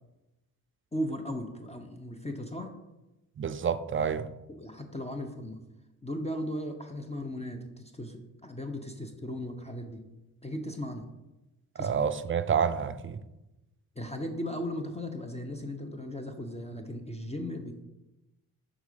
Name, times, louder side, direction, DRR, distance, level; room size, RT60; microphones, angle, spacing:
voice 1, 0.9-2.7 4.5-5.6 6.0-10.0 10.4-11.0 11.8-11.9 14.0-17.7, left 1 dB, 15° left, 0.7 m, -37 dB
voice 2, 3.4-4.3 11.8-13.2, right 7 dB, 35° right, 0.4 m, -28 dB
6.3 x 3.7 x 5.0 m
cardioid pair, 60°, 38 cm